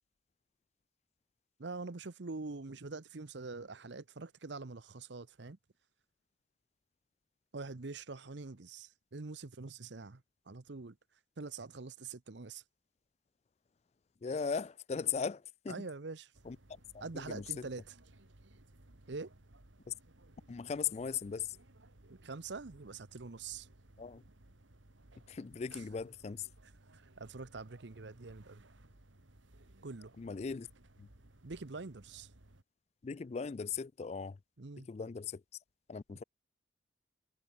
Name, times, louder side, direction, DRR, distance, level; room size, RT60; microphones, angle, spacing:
voice 1, 1.6-5.6 7.5-11.0 11.4-12.6 15.7-16.3 17.0-17.9 19.1-19.3 22.1-23.7 25.7-25.8 26.9-28.6 29.8-30.1 31.4-32.3 34.6-34.9, right 3 dB, 70° right, 0.9 m, -45 dB
voice 2, 14.2-15.9 16.4-16.6 16.9-17.7 19.9-20.0 20.5-21.6 24.0-24.2 25.3-26.5 30.2-30.7 31.0-31.1 33.0-34.4 34.8-35.4 35.9-36.2, left 6 dB, 35° left, 0.3 m, -38 dB
sound 1, 16.3-32.6, right 1 dB, 90° right, 2.3 m, -61 dB
head